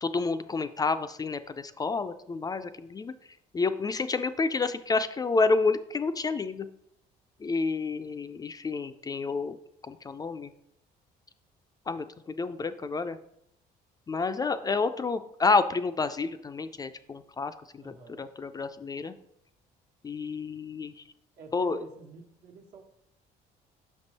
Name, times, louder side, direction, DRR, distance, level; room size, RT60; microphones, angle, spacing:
voice 1, 0.0-3.1 3.5-6.7 7.4-9.6 9.8-10.5 11.9-13.2 14.1-19.1 20.0-21.0 21.5-21.8, left 4 dB, 20° left, 10 dB, 0.3 m, -29 dB
voice 2, 17.8-18.3 21.4-22.8, right 4 dB, 75° right, 1 dB, 1.2 m, -48 dB
5.9 x 5.3 x 4.1 m, 0.75 s
cardioid pair, 110°, 17 cm